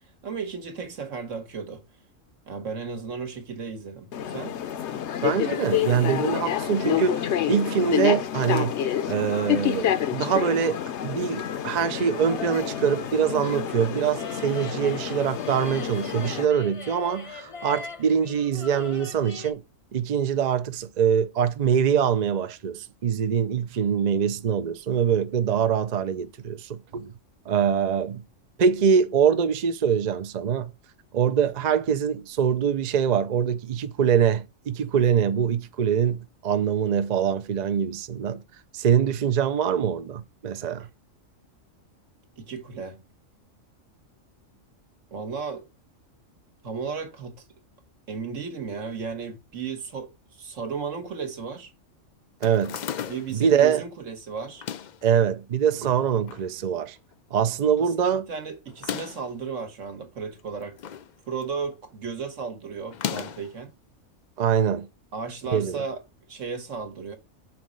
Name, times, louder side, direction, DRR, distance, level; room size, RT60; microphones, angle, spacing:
voice 1, 0.2-1.8 2.5-4.6 42.4-43.0 45.1-45.7 46.6-47.4 48.1-51.7 53.1-54.6 57.8-60.8 61.3-63.7 65.1-66.0 66.3-67.2, right 5 dB, 70° right, 1.6 m, -34 dB
sound 1, 4.1-16.5, left 10 dB, 65° left, 0.9 m, -28 dB
voice 2, 5.2-8.7 9.1-19.6 19.9-27.1 27.5-28.2 28.6-30.7 31.1-38.4 38.7-40.9 52.4-52.8 53.3-53.8 55.0-57.0 57.3-58.3 64.4-64.9 65.5-65.8, right 7 dB, 50° right, 0.5 m, -24 dB
sound 2, 11.9-19.5, left 4 dB, 30° left, 0.8 m, -41 dB
sound 3, 52.4-53.4 54.5-55.0 55.8-56.5 56.8-56.9 57.1-57.2 58.7-59.3 60.3-61.1 61.4-61.7 62.9-63.5, left 8 dB, 85° left, 0.4 m, -35 dB
5.9 x 4.1 x 6.2 m
omnidirectional pair, 1.4 m